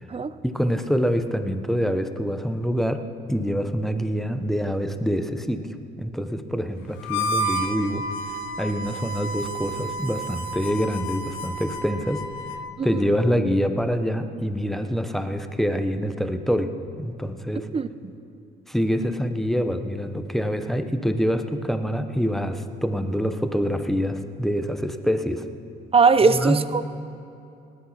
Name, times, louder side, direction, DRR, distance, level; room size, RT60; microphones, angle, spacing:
voice 1, 0.4-8.1 8.6-12.3 12.8-17.7 18.7-25.5 26.3-26.6, equal, ahead, 8 dB, 0.9 m, -25 dB
Harmonica, 7.0-12.7, right 1 dB, 80° left, 1.0 m, -31 dB
voice 2, 25.9-26.8, right 4 dB, 30° right, 14 dB, 0.6 m, -19 dB
18.5 x 8.7 x 5.9 m, 2.6 s
supercardioid pair, 75°, 20 cm